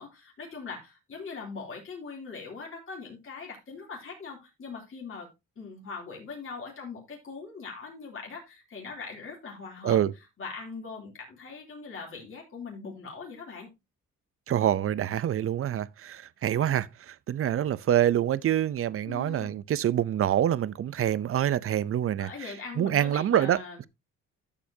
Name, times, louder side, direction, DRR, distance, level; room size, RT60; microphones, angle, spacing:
voice 1, 0.0-5.3 5.6-10.0 10.4-13.7 19.0-19.6 22.2-23.9, left 4 dB, 45° left, 3.2 m, -41 dB
voice 2, 14.5-22.3 22.8-23.6, right 11 dB, 50° right, 0.6 m, -26 dB
12.0 x 6.9 x 2.7 m
cardioid pair, 90°, 30 cm